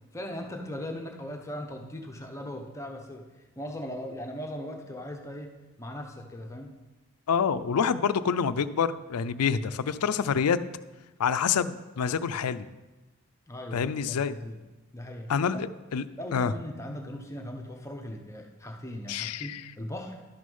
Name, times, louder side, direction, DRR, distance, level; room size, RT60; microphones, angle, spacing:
voice 1, 0.1-5.5 5.8-6.7 13.5-14.6 14.9-15.3 16.2-20.2, left 1 dB, 15° left, 2 dB, 0.8 m, -39 dB
voice 2, 7.3-10.6 11.2-12.7 13.7-14.3 15.3-16.0 16.3-16.5 19.1-19.6, left 6 dB, 90° left, 14 dB, 0.4 m, -27 dB
11.5 x 6.4 x 5.4 m, 1.1 s
head